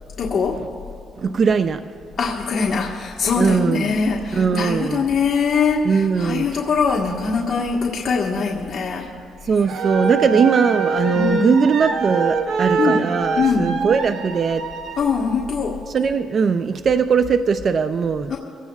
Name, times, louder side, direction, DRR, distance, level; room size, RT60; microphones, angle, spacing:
voice 1, 0.2-0.6 2.2-9.1 10.3-10.5 11.1-11.6 12.8-13.0 13.4-13.7 15.0-15.8 18.3-18.4, left 5 dB, 50° left, -4 dB, 1.4 m, -22 dB
voice 2, 1.2-1.9 3.4-3.9 4.3-5.0 5.8-6.6 9.4-14.7 15.9-18.3, right 6 dB, 50° right, 10 dB, 0.5 m, -20 dB
sound 1, 9.6-15.0, right 5 dB, 75° right, 1.2 m, -24 dB
23.5 x 16.5 x 2.4 m, 2.7 s
cardioid pair, 90°, 0 cm